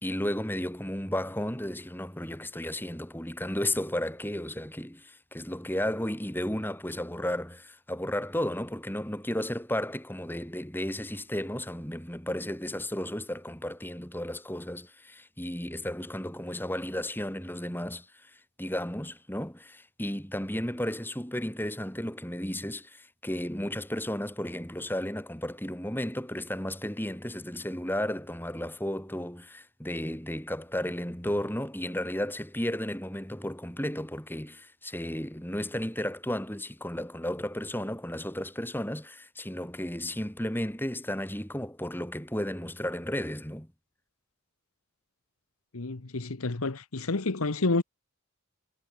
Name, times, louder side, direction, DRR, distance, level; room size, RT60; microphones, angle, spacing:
voice 1, 0.0-18.3 18.6-43.7, left 1 dB, 10° left, 4.5 m, -33 dB
voice 2, 45.7-47.8, left 3 dB, 85° left, 1.2 m, -29 dB
head